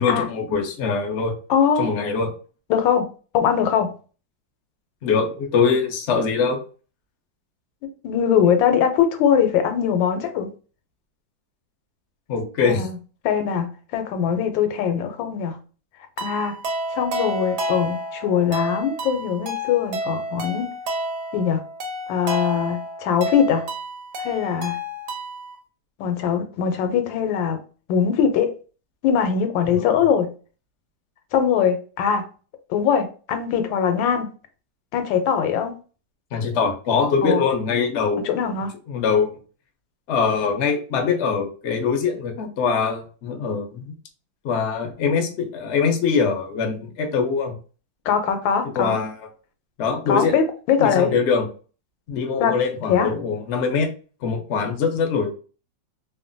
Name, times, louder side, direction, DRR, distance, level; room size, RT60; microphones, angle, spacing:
voice 1, 0.0-1.3 1.8-2.3 5.0-6.6 12.3-12.9 29.7-30.0 36.3-38.3 38.9-39.4 40.1-43.9 44.4-47.5 48.8-49.2 49.8-50.3 50.8-51.4 52.1-53.9 54.2-55.3, left 5 dB, 70° left, 0.6 m, -23 dB
voice 2, 1.5-1.9 2.7-3.1 3.3-3.9 7.8-10.5 12.7-13.0 13.2-15.6 16.2-16.6 16.9-20.7 21.3-21.6 22.1-23.6 24.2-24.8 26.0-27.6 27.9-28.5 29.0-30.3 31.3-32.3 32.7-34.3 34.9-35.7 37.2-37.4 38.2-38.7 48.1-49.0 50.1-51.1 52.4-52.5 52.9-53.1, left 7 dB, 85° left, 1.3 m, -21 dB
sound 1, 16.2-25.6, equal, 65° right, 1.2 m, -30 dB
3.1 x 2.1 x 2.5 m
omnidirectional pair, 2.0 m